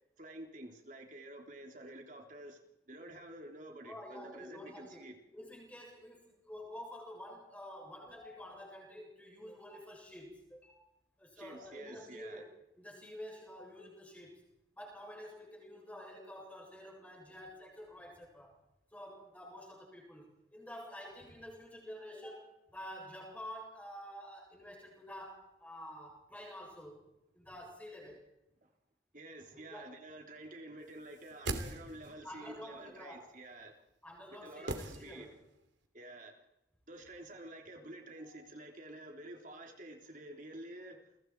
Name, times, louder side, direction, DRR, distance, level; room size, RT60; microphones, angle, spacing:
voice 1, 0.2-2.6 2.9-5.1 11.4-12.4 28.6-28.7 29.1-33.8 34.4-35.3 35.9-36.3 36.9-41.0, right 1 dB, 45° right, 2 dB, 3.2 m, -49 dB
voice 2, 3.8-10.8 11.2-14.4 14.7-18.6 18.9-27.0 27.3-28.2 29.5-29.9 32.2-33.3 34.0-35.4 38.2-38.4, equal, 10° left, -1 dB, 7.8 m, -49 dB
sound 1, 31.1-32.3 34.7-35.6 35.8-35.9, right 2 dB, 80° right, 2.9 m, -41 dB
29.5 x 23.0 x 4.7 m, 0.84 s
head